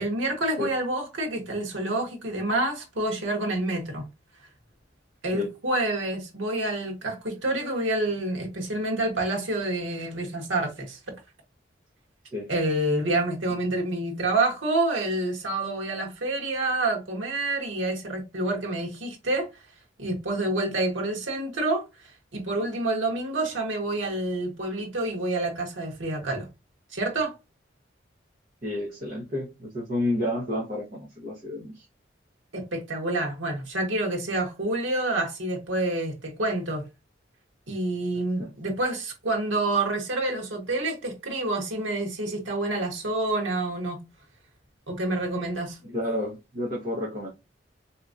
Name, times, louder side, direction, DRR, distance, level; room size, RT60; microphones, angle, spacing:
voice 1, 0.0-4.1 5.2-11.0 12.5-19.5 20.0-21.8 22.3-26.5 26.9-27.3 32.5-36.8 37.7-44.0 44.9-45.8, right 2 dB, 90° right, 1.2 m, -28 dB
voice 2, 28.6-31.8 38.4-38.5 45.8-47.3, left 1 dB, 45° right, 0.9 m, -30 dB
3.6 x 2.9 x 2.5 m
head